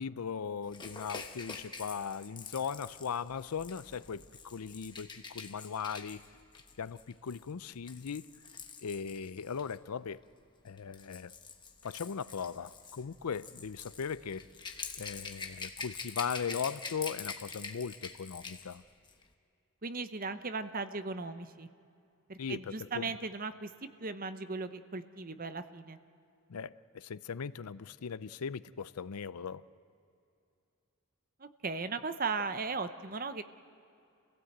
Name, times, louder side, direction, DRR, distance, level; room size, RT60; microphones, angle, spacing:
voice 1, 0.0-6.2 6.8-8.3 8.8-10.2 10.6-11.3 11.8-14.4 15.0-18.8 22.4-23.1 26.5-29.6, left 6 dB, 90° left, 17 dB, 0.5 m, -38 dB
Rattle / Rattle (instrument), 0.7-9.7 10.7-18.8 19.1-19.2, left 5 dB, 20° left, 1.1 m, -46 dB
voice 2, 19.8-21.7 22.3-26.0 31.4-33.4, right 4 dB, 40° right, 10 dB, 0.8 m, -37 dB
27.5 x 16.5 x 8.0 m, 2.6 s
head